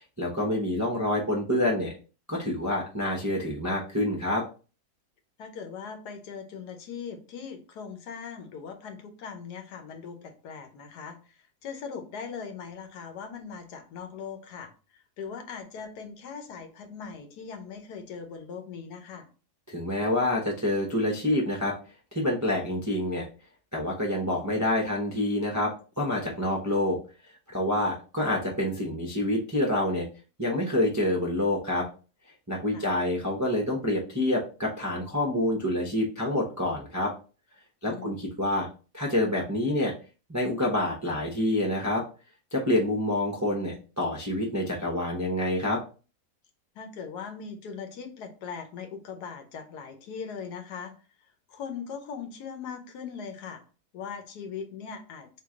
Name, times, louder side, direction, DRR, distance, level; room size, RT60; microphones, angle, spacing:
voice 1, 0.0-1.9 2.3-4.4 19.7-21.8 22.1-23.3 23.7-27.0 27.5-30.1 30.4-31.9 32.5-37.1 37.8-38.7 38.9-39.9 40.3-42.0 42.5-45.8, left 1 dB, 25° right, -2 dB, 0.3 m, -27 dB
voice 2, 5.4-14.7 15.2-19.3 32.7-32.9 37.8-38.2 46.7-50.9 51.5-53.6 53.9-55.4, left 6 dB, 80° left, 6 dB, 1.4 m, -40 dB
3.8 x 3.1 x 3.6 m, 0.36 s
omnidirectional pair, 1.7 m